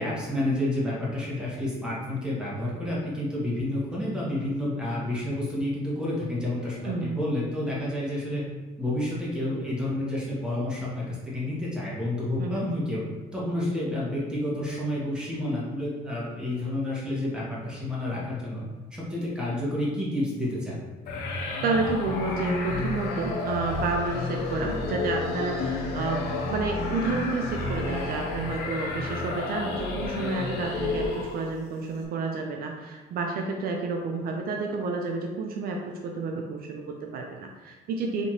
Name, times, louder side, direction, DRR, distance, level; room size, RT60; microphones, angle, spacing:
voice 1, 0.0-8.4 8.8-13.0 13.3-18.6 18.9-20.8, left 1 dB, 5° right, -7 dB, 1.3 m, -30 dB
voice 2, 6.8-7.2 12.4-12.7 21.6-38.3, right 3 dB, 60° right, 2 dB, 0.4 m, -30 dB
sound 1, 21.1-31.6, left 3 dB, 75° left, 0.7 m, -31 dB
4.2 x 2.8 x 3.0 m, 1.3 s
cardioid pair, 110°, 17 cm